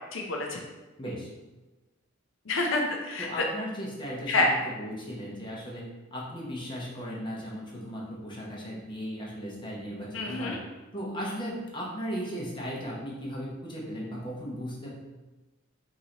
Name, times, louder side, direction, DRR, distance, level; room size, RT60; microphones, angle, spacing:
voice 1, 0.1-0.6 2.5-3.5 4.3-4.5 10.1-10.6, left 2 dB, 65° left, 1 dB, 0.5 m, -28 dB
voice 2, 1.0-1.3 3.2-5.8 6.1-10.5 10.9-14.9, equal, 25° left, -4 dB, 1.0 m, -36 dB
5.4 x 2.8 x 2.9 m, 1.2 s
head